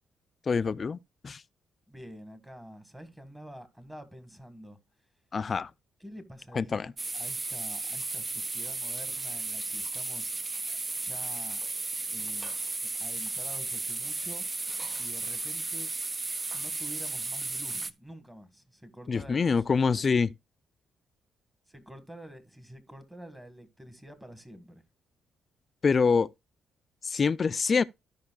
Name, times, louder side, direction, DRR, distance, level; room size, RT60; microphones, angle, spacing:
voice 1, 0.5-1.0 1.2-1.4 5.3-5.7 6.5-6.9 19.1-20.3 25.8-26.3 27.0-27.8, left 5 dB, 40° left, 0.4 m, -25 dB
voice 2, 1.9-4.8 6.0-10.5 10.9-11.6 12.1-12.6 13.0-14.4 14.9-15.9 16.5-20.1 21.7-24.8, equal, 10° right, 1.6 m, -48 dB
sound 1, 7.0-17.9, right 3 dB, 25° right, 0.5 m, -34 dB
15.0 x 5.4 x 2.3 m
cardioid pair, 90°, 0 cm